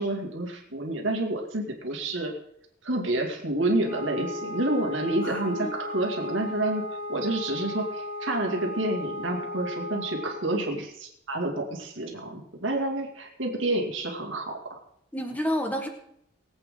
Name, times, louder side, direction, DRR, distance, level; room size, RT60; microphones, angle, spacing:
voice 1, 0.0-2.3 2.8-6.8 7.1-14.8, right 1 dB, 70° right, 1 dB, 2.6 m, -29 dB
Wind instrument woodwind instrument, 3.8-10.5, left 2 dB, 75° left, 5.2 m, -36 dB
voice 2, 5.2-5.8 15.1-15.9, equal, 10° left, 3 dB, 1.6 m, -30 dB
22.0 x 8.5 x 3.9 m, 0.73 s
head